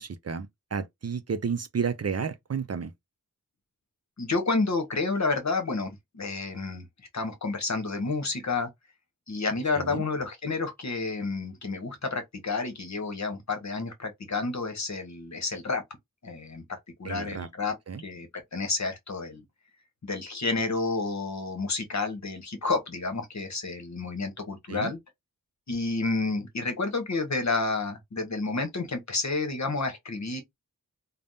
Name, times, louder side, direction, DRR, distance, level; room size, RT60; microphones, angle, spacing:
voice 1, 0.0-2.9 9.7-10.0 17.0-17.5 17.9-18.0 24.7-24.9, right 6 dB, 45° right, 0.4 m, -32 dB
voice 2, 4.2-6.9 7.1-8.7 9.3-15.8 16.2-17.8 18.0-19.4 20.0-25.0 25.7-30.4, left 3 dB, 50° left, 1.0 m, -30 dB
3.3 x 2.1 x 2.6 m
wide cardioid pair, 70°, 36 cm